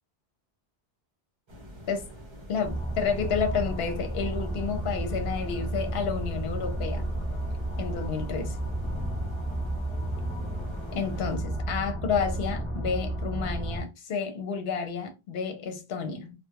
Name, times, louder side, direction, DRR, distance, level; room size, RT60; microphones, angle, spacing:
sound 1, 1.5-11.4, equal, 30° right, 0.6 m, -46 dB
voice 1, 2.5-7.2 7.8-8.6 10.9-16.3, left 6 dB, 75° left, 0.9 m, -30 dB
Space Hulk Propulsion Hall, 2.6-13.8, right 1 dB, 15° left, 0.3 m, -32 dB
2.3 x 2.1 x 2.8 m
omnidirectional pair, 1.0 m